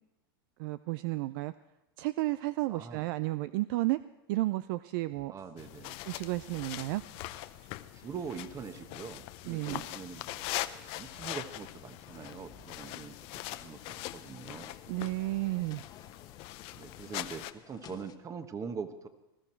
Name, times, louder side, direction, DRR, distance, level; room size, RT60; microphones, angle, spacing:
voice 1, 0.6-1.5 2.0-4.0 4.3-5.3 6.1-7.0 9.4-9.8 14.9-15.8, right 19 dB, 60° right, 15 dB, 0.4 m, -32 dB
voice 2, 2.7-3.1 5.3-6.0 7.9-10.5 11.0-14.8 16.8-19.1, right 6 dB, 25° right, 9 dB, 1.3 m, -43 dB
sound 1, 5.1-13.1, right 7 dB, 45° right, 4.2 m, -62 dB
sound 2, 5.6-17.5, left 16 dB, 50° left, 0.7 m, -42 dB
sound 3, 11.7-18.2, left 9 dB, 30° left, 1.2 m, -56 dB
20.0 x 14.0 x 4.5 m, 0.96 s
hypercardioid pair, 110°, 13 cm